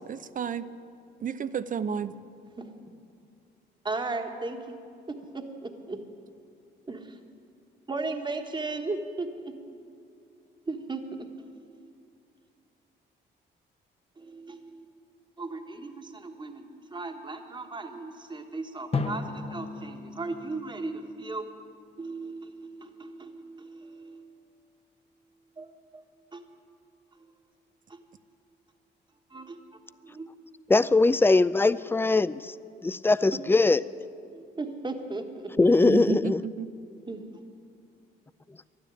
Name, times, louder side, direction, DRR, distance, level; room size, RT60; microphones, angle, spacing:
voice 1, 0.1-0.7 1.2-2.2 35.6-36.7, right 7 dB, 40° right, 15 dB, 0.6 m, -32 dB
voice 2, 3.8-4.7 5.1-6.0 6.9-7.2 7.9-9.5 10.7-11.3 11.8-11.9 14.2-14.9 15.4-21.4 22.0-24.3 25.6-25.7 25.9-26.0 26.3-26.4 29.3-29.6 30.0-30.3 34.3-35.5 37.1-37.4, right 3 dB, 25° right, 5 dB, 1.3 m, -36 dB
Drum, 18.9-21.6, left 4 dB, 30° left, 0.8 m, -35 dB
voice 3, 30.7-32.5 32.8-33.8 35.6-36.4, left 3 dB, 10° left, 16 dB, 0.3 m, -21 dB
12.0 x 10.5 x 9.9 m, 2.5 s
cardioid pair, 90°, 20 cm